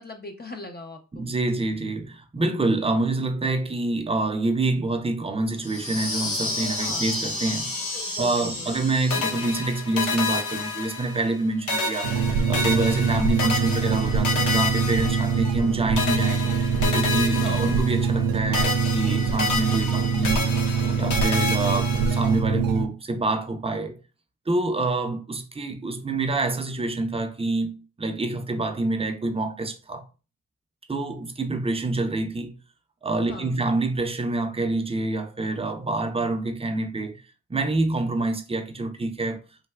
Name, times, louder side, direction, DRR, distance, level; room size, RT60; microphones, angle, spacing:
voice 1, 0.0-1.3 6.8-7.1 7.9-8.7 13.4-13.5 15.3-15.4 17.4-17.7 33.3-33.6, left 2 dB, 30° left, 0.6 m, -39 dB
voice 2, 1.1-7.7 8.2-12.1 12.5-16.4 16.9-20.5 20.9-24.0 24.5-30.1 30.9-32.5 33.0-37.2 37.5-39.4, right 2 dB, 15° right, 0.6 m, -27 dB
sound 1, 5.6-9.6, left 2 dB, 90° left, 0.9 m, -31 dB
sound 2, 9.1-11.4 11.7-15.7 16.0-18.3 18.5-22.4, left 3 dB, 55° left, 1.0 m, -29 dB
sound 3, 12.0-22.9, right 5 dB, 70° right, 0.5 m, -24 dB
3.2 x 2.6 x 2.3 m
supercardioid pair, 60°, 35 cm